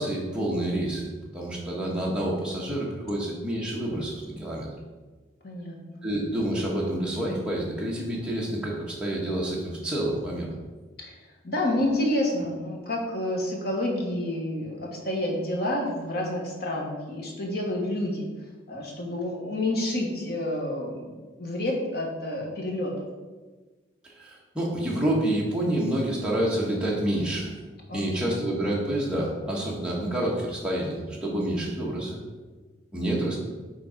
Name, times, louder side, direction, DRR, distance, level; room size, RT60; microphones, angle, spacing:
voice 1, 0.0-4.7 6.0-10.5 24.0-27.5 27.9-32.2 32.9-33.4, right 1 dB, 5° right, -5 dB, 1.2 m, -28 dB
voice 2, 5.4-6.0 11.0-11.2 11.4-18.2 18.7-22.9 27.9-28.3 33.1-33.4, left 1 dB, 55° left, -1 dB, 1.4 m, -29 dB
6.7 x 3.9 x 5.0 m, 1.3 s
head